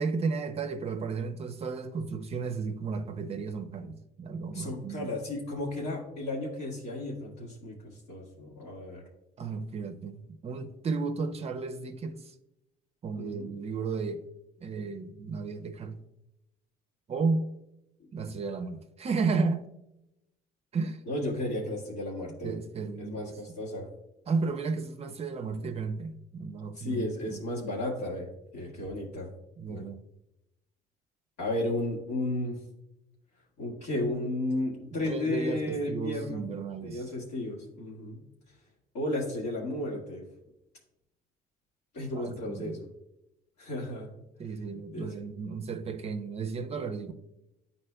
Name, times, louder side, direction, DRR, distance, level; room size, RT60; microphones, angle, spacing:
voice 1, 0.0-5.1 9.4-12.3 13.0-14.3 14.6-16.0 17.1-17.5 18.1-19.7 20.7-21.0 22.4-23.3 24.3-27.4 29.6-30.0 35.0-37.0 42.1-42.8 44.4-47.1, right 4 dB, 40° right, 0.5 m, -33 dB
voice 2, 4.5-9.0 13.2-13.5 21.1-22.5 23.0-23.8 26.8-28.3 28.5-29.3 29.7-29.9 31.4-32.6 33.6-36.4 36.8-38.2 38.9-40.2 41.9-42.9 43.6-44.1 44.9-45.1, left 1 dB, 85° left, 1.7 m, -33 dB
10.0 x 4.1 x 2.2 m
cardioid pair, 110°, 17 cm